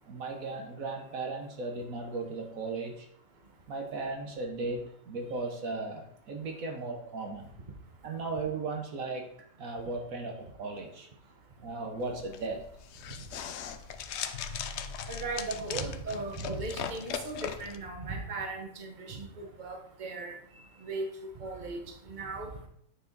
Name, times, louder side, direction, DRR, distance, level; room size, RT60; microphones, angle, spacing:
voice 1, 0.0-3.1 3.7-7.5 8.0-9.3 9.6-11.1 11.6-12.6, right 3 dB, 70° right, 3 dB, 1.4 m, -36 dB
sound 1, 12.0-17.8, left 7 dB, 65° left, 0.7 m, -39 dB
voice 2, 15.1-20.3 20.8-21.0 21.4-21.8 22.1-22.5, right 3 dB, 35° right, 3 dB, 1.2 m, -37 dB
8.6 x 4.7 x 3.9 m, 0.68 s
omnidirectional pair, 1.6 m